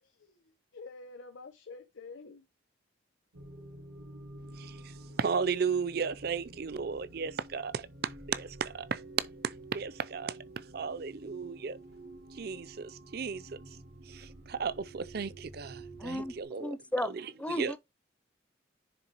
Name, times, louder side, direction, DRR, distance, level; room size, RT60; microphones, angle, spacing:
voice 1, 0.0-2.5, left 4 dB, 80° left, 0.9 m, -48 dB
sound 1, 3.3-16.4, right 1 dB, 85° right, 2.0 m, -50 dB
voice 2, 4.6-9.0 9.4-10.4 10.7-11.8 12.3-13.5 14.1-16.8 17.0-17.7, right 5 dB, 55° right, 0.4 m, -35 dB
voice 3, 16.0-16.3 16.6-17.8, left 1 dB, 5° left, 0.4 m, -34 dB
10.0 x 3.8 x 2.9 m
head